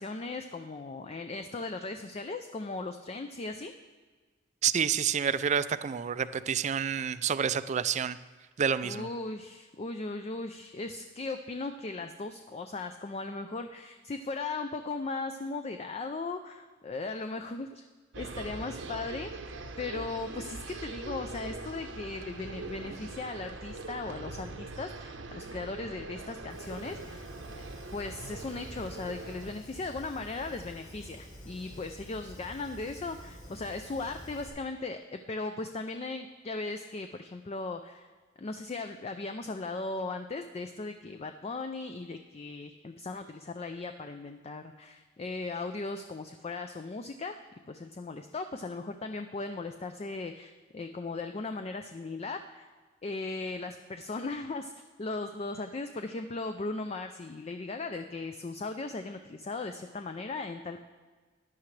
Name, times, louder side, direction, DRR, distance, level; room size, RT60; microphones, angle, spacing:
voice 1, 0.0-3.7 8.8-17.8 18.2-19.3 19.8-38.1 38.4-47.4 47.7-52.7 53.0-54.7 55.0-60.8, left 3 dB, 35° left, 7 dB, 0.4 m, -37 dB
voice 2, 4.6-8.2 8.6-9.1, right 7 dB, 35° right, 14 dB, 0.3 m, -28 dB
sound 1, 18.1-29.5, right 3 dB, 75° right, 0.9 m, -42 dB
Fire, 26.5-34.5, equal, 90° left, 2.8 m, -48 dB
14.0 x 10.5 x 3.2 m, 1.4 s
head